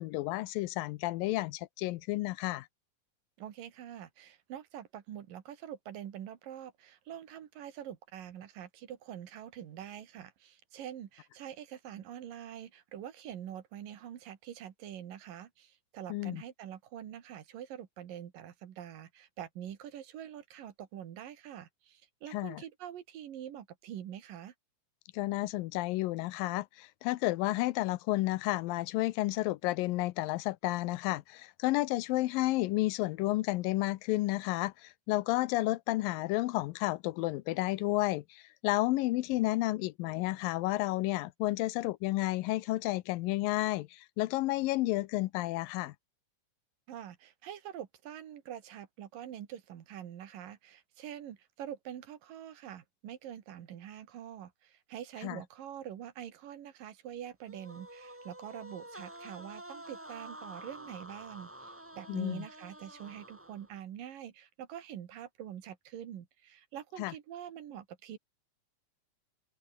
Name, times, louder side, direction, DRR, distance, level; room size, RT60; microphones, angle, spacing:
voice 1, 0.0-2.7 16.1-16.4 22.3-22.6 25.1-45.9 55.2-55.4 62.1-62.4 67.0-67.1, left 18 dB, 85° left, 2.4 m, -31 dB
voice 2, 3.4-24.5 46.9-68.2, right 10 dB, 75° right, 3.5 m, -45 dB
sound 1, 57.5-63.8, right 1 dB, 20° right, 0.3 m, -49 dB
omnidirectional pair, 4.0 m